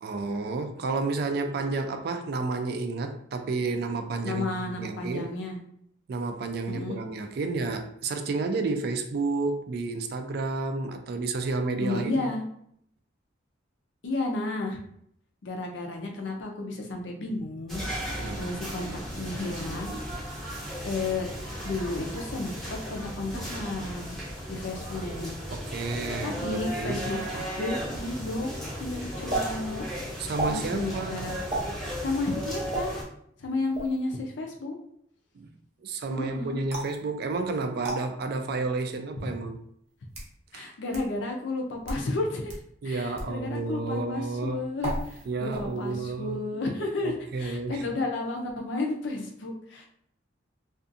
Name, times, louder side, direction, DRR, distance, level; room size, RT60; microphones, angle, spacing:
voice 1, 0.0-5.4 6.1-12.2 18.1-18.5 25.5-27.0 30.2-31.2 35.4-35.5 35.8-39.6 40.5-40.7 42.8-44.6 45.3-46.4 47.0-47.8, right 3 dB, 55° right, 0.3 m, -31 dB
voice 2, 4.2-5.6 6.7-7.0 11.8-12.4 14.0-14.8 15.4-17.8 18.1-19.9 20.8-21.3 21.6-24.2 24.5-25.3 26.2-29.9 30.5-31.4 32.0-33.0 33.4-34.8 36.1-36.6 40.5-42.6 42.8-49.9, left 2 dB, 70° left, 0.5 m, -32 dB
sound 1, 17.7-33.0, equal, ahead, 0.7 m, -35 dB
sound 2, 29.3-29.4 30.3-30.6 31.5-31.7 32.7-32.9 33.7-34.0 36.7-37.0 37.8-38.0 38.9-39.0 39.9-40.3 40.9-41.0 41.7-42.0 42.5-42.6 43.2-43.3 44.8-45.2 45.5-45.9, right 2 dB, 35° right, 0.7 m, -32 dB
2.5 x 2.3 x 2.5 m
head